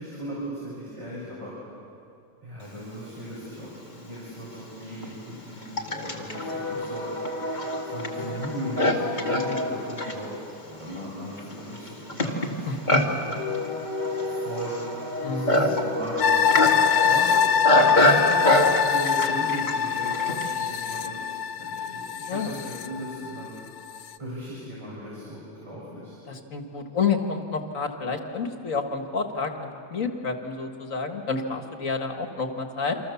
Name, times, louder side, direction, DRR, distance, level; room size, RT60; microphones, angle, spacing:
voice 1, 0.0-1.5 2.4-7.1 7.8-10.4 10.6-13.3 14.2-14.8 15.3-17.3 17.9-23.5 24.2-26.2, equal, 20° right, -8 dB, 7.1 m, -37 dB
Livestock farm animals working animals, 3.8-3.9 4.6-20.5, left 1 dB, 30° left, 2.4 m, -26 dB
voice 2, 12.7-13.0 15.2-15.7 22.3-22.6 26.3-33.0, left 4 dB, 60° left, 5 dB, 2.2 m, -29 dB
sound 1, 16.2-23.5 23.9-24.0, left 7 dB, 75° left, 1.3 m, -24 dB
29.0 x 26.0 x 7.2 m, 2.6 s
omnidirectional pair, 1.6 m